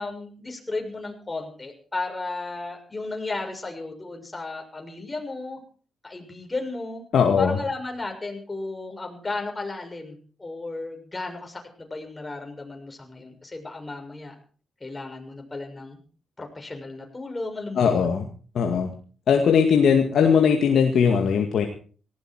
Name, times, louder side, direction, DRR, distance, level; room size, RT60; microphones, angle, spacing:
voice 1, 0.0-5.6 6.0-7.0 7.4-14.3 14.8-16.0 16.4-18.2, left 3 dB, 25° left, 3 dB, 6.7 m, -34 dB
voice 2, 7.1-7.6 17.8-18.3 18.6-18.9 19.3-21.7, left 6 dB, 65° left, 3 dB, 2.2 m, -19 dB
18.5 x 16.0 x 4.6 m, 0.41 s
hypercardioid pair, 45°, 0 cm